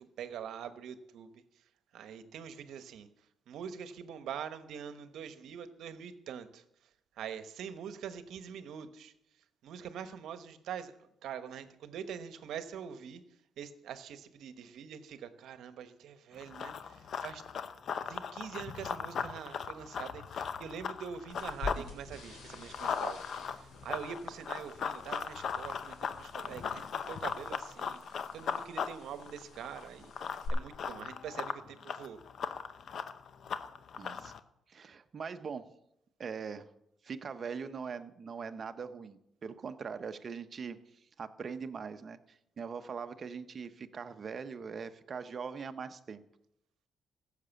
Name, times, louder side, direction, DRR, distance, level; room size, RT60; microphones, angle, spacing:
voice 1, 0.0-1.6 1.9-3.1 3.5-6.6 7.2-9.1 9.6-13.2 13.6-17.4 17.9-30.1 30.5-32.2, right 8 dB, 75° right, 10 dB, 1.0 m, -44 dB
Run, 16.4-21.8 22.2-34.4, left 7 dB, 60° left, 0.7 m, -38 dB
sound 1, 21.3-30.5, left 3 dB, 80° left, 4.2 m, -48 dB
voice 2, 34.0-34.3 34.7-35.7 36.2-36.7 37.0-46.2, right 6 dB, 45° right, 10 dB, 0.9 m, -42 dB
15.0 x 6.7 x 7.0 m, 0.82 s
cardioid pair, 90°, 0 cm